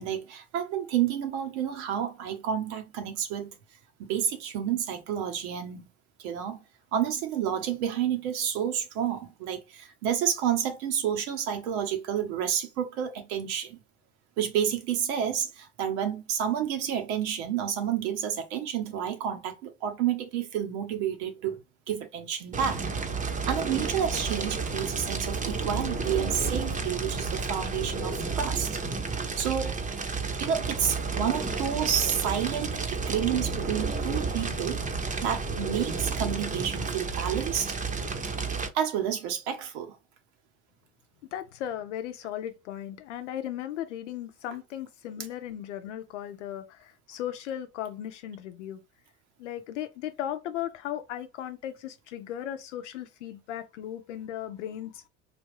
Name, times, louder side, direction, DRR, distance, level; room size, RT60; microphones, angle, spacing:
voice 1, 0.0-3.5 4.0-5.9 6.2-6.6 6.9-13.8 14.4-21.6 21.9-22.9 23.5-28.8 29.2-29.8 30.4-34.8 35.2-37.8 38.7-40.0, right 9 dB, 75° right, 1.0 m, -30 dB
Fire, 22.5-38.7, right 4 dB, 20° right, 0.7 m, -31 dB
voice 2, 41.3-48.8 49.4-55.1, left 11 dB, 85° left, 0.7 m, -36 dB
3.4 x 2.4 x 3.1 m
hypercardioid pair, 70°, 35 cm